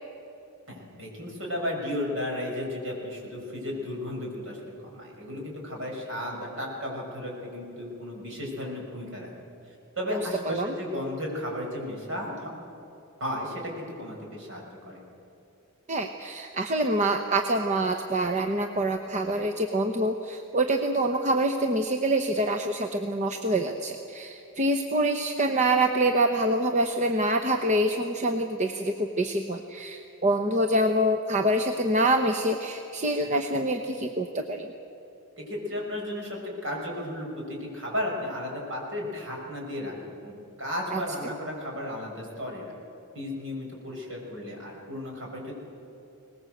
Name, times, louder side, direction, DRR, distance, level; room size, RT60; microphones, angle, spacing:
voice 1, 0.7-4.6 4.9-9.3 10.0-12.5 13.2-15.0 35.4-42.7 43.1-45.5, left 1 dB, 60° right, -1 dB, 6.3 m, -34 dB
voice 2, 15.9-34.7 40.9-41.3, right 1 dB, 30° right, 5 dB, 0.9 m, -26 dB
22.5 x 19.5 x 7.9 m, 2.8 s
head